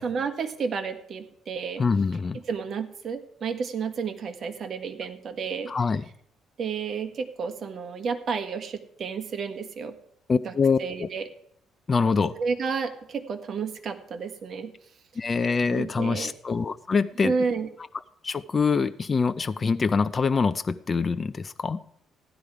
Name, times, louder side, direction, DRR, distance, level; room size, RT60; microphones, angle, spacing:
voice 1, 0.0-1.8 2.3-5.7 6.6-9.9 10.4-10.5 10.8-11.3 12.4-14.7 15.7-16.3 17.2-17.7, right 5 dB, 45° right, 6 dB, 1.7 m, -31 dB
voice 2, 1.8-2.4 5.7-6.0 10.3-11.1 11.9-12.3 15.2-17.3 18.2-21.8, left 5 dB, 30° left, 12 dB, 0.5 m, -24 dB
16.0 x 12.0 x 4.9 m, 0.71 s
cardioid pair, 125°, 0 cm